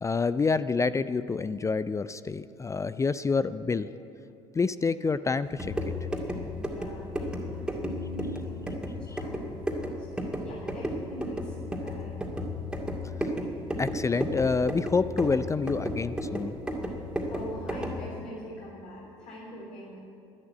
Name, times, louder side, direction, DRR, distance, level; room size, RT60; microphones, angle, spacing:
voice 1, 0.0-3.9 4.5-5.7 13.8-16.6, left 4 dB, 20° left, 14 dB, 0.4 m, -27 dB
sound 1, 5.5-18.1, equal, 5° right, 2.2 m, -33 dB
voice 2, 6.6-12.2 17.3-20.0, equal, 55° left, -5 dB, 3.8 m, -43 dB
sound 2, 9.9-10.0 10.1-10.5 10.9-11.4 11.7-12.2 12.8-13.3 13.6-14.1 14.5-15.0 15.4-15.5, left 1 dB, 85° left, 2.2 m, -54 dB
12.0 x 11.0 x 8.5 m, 2.6 s
hypercardioid pair, 65°, 15 cm